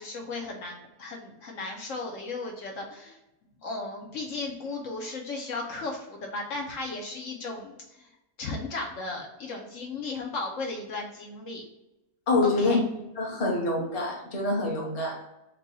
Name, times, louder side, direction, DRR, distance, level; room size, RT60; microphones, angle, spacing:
voice 1, 0.0-3.2 3.6-8.1 8.4-11.6 12.4-12.8, left 3 dB, 70° left, 0 dB, 1.0 m, -35 dB
voice 2, 12.3-12.8 13.2-15.2, left 2 dB, 30° left, -2 dB, 0.9 m, -26 dB
4.5 x 2.3 x 3.9 m, 0.95 s
omnidirectional pair, 1.5 m